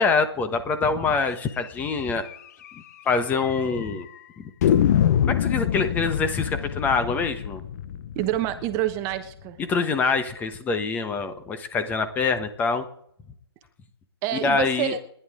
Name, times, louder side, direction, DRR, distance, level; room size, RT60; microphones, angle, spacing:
voice 1, 0.0-2.2 3.0-4.1 4.4-4.5 5.2-7.6 9.6-12.8 14.4-14.9, left 4 dB, 10° left, 10 dB, 1.1 m, -25 dB
sound 1, 1.8-1.9 2.3-2.4 2.6-2.7 3.4-3.9 4.6-9.4, left 9 dB, 40° left, 0.8 m, -25 dB
voice 2, 8.1-9.6 14.2-15.0, right 12 dB, 20° right, 9 dB, 1.1 m, -27 dB
30.0 x 10.5 x 3.7 m, 0.71 s
figure-of-eight pair, 145°, 14 cm